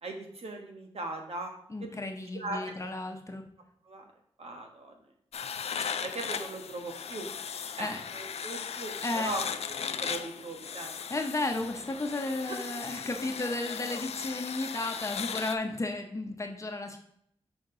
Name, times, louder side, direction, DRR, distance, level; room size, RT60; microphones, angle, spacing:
voice 1, 0.0-1.5 1.8-2.1 2.3-2.7 3.8-4.1 4.4-5.0 6.0-7.3 7.8-9.5 9.9-10.9 12.5-12.6, right 2 dB, 70° right, 2 dB, 1.3 m, -39 dB
voice 2, 1.7-3.4 7.8-8.0 9.0-9.3 11.1-17.0, left 2 dB, 30° left, 3 dB, 0.8 m, -33 dB
sound 1, 5.3-15.6, left 7 dB, 75° left, 0.4 m, -37 dB
6.5 x 5.2 x 3.8 m, 0.70 s
wide cardioid pair, 115°, 11 cm